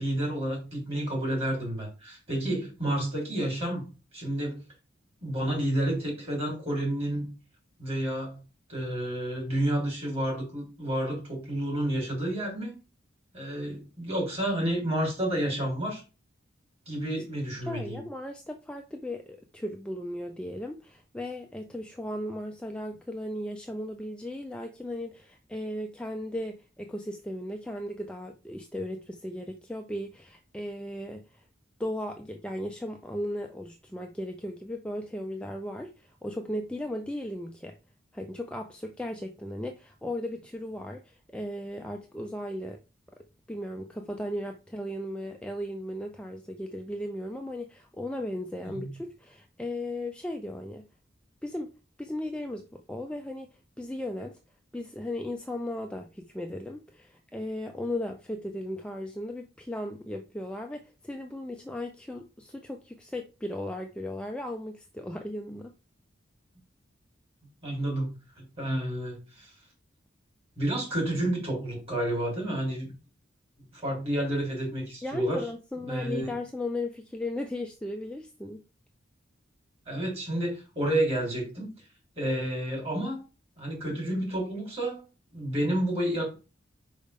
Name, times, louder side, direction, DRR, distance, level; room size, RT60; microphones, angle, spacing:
voice 1, 0.0-3.9 4.1-4.6 5.2-7.3 7.8-8.4 8.7-12.8 13.3-16.0 16.9-18.0 48.6-48.9 67.6-68.1 68.4-69.5 70.6-72.9 73.7-75.4 75.8-76.3 79.9-81.7 82.2-83.2 83.6-85.1 85.3-86.3, right 1 dB, 30° right, 3.6 m, -30 dB
voice 2, 17.7-31.4 31.8-37.8 38.1-42.8 43.5-50.9 51.4-51.7 52.0-53.5 53.8-54.4 54.7-65.7 75.0-78.6, left 1 dB, 5° left, 0.4 m, -36 dB
5.4 x 5.1 x 3.5 m
head